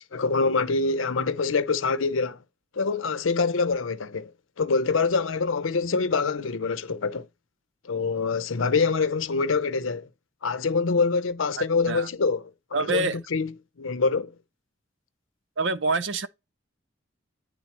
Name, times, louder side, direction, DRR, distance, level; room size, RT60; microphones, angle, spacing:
voice 1, 0.1-2.4 2.7-4.3 4.6-7.3 7.8-10.1 10.4-13.5 13.8-14.3, left 4 dB, 90° left, 0.6 m, -25 dB
voice 2, 11.6-12.1 12.7-13.2 15.6-16.3, right 3 dB, 70° right, 0.7 m, -26 dB
9.6 x 3.8 x 2.9 m
head